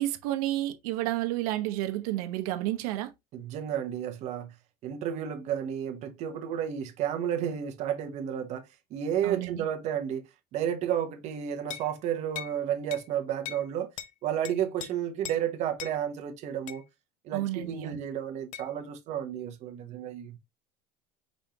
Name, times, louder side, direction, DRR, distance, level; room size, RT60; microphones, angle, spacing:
voice 1, 0.0-3.1 9.2-9.6 17.3-18.0, right 15 dB, 80° right, 0.9 m, -31 dB
voice 2, 3.3-4.5 4.8-8.7 8.9-10.3 10.5-13.9 14.2-16.8 17.2-20.4, right 9 dB, 35° right, 0.9 m, -32 dB
sound 1, 11.7-11.9 12.3-12.6 12.9-13.1 13.4-13.7 14.0-14.1 14.4-14.9 15.2-15.4 15.8-16.0 16.7-16.8 18.5-18.7, left 12 dB, 45° left, 0.4 m, -39 dB
5.2 x 3.6 x 2.8 m
cardioid pair, 170°, 19 cm